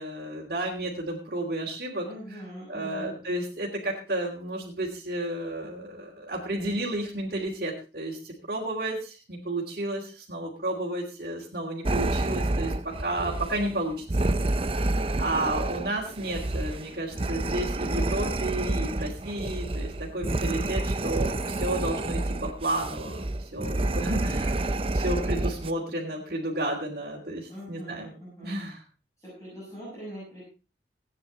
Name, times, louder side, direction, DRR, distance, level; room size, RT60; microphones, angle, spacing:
voice 1, 0.0-2.0 2.3-2.4 2.7-12.7 13.0-14.3 15.2-24.6 24.9-28.1 28.4-28.8, right 1 dB, 55° right, -7 dB, 2.9 m, -32 dB
voice 2, 2.0-3.1 27.5-28.6 29.2-30.4, equal, 15° left, -7 dB, 6.4 m, -42 dB
sound 1, 11.8-25.7, right 2 dB, 30° right, 0.5 m, -29 dB
16.5 x 9.5 x 4.0 m, 0.33 s
head